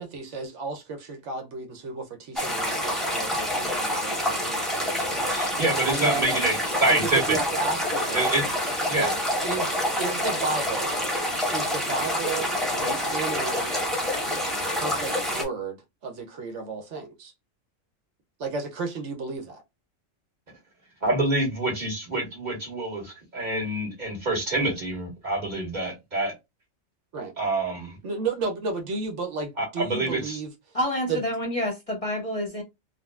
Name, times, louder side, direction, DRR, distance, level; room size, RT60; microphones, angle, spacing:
voice 1, 0.0-6.4 6.9-8.3 9.0-9.2 9.4-10.9 11.5-13.9 14.7-17.3 18.4-19.6 27.1-27.3 28.0-30.8 31.1-31.2, right 4 dB, 70° right, 0.9 m, -33 dB
sound 1, 2.4-15.4, left 1 dB, ahead, 0.7 m, -27 dB
voice 2, 5.2-7.4 8.1-8.5 8.8-9.1 21.0-26.3 27.4-28.0 29.6-30.4, right 2 dB, 35° right, 1.4 m, -26 dB
voice 3, 30.7-32.6, left 1 dB, 35° left, 0.7 m, -28 dB
3.7 x 2.1 x 2.3 m
omnidirectional pair, 1.3 m